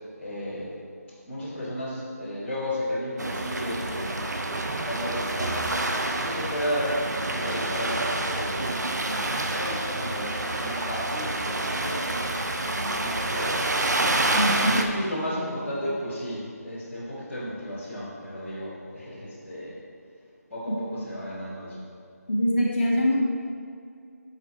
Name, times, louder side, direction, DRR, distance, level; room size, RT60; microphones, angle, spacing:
voice 1, 0.1-0.7 1.2-5.7 6.2-6.9 7.2-13.6 14.6-19.8 20.5-21.8, equal, ahead, -24 dB, 0.5 m, -34 dB
sound 1, 3.2-14.8, right 2 dB, 85° right, 0.7 m, -28 dB
voice 2, 14.3-14.8 20.7-20.8 22.3-23.1, equal, 35° left, -6 dB, 1.4 m, -23 dB
6.4 x 4.9 x 4.5 m, 2.3 s
figure-of-eight pair, 180°, 9 cm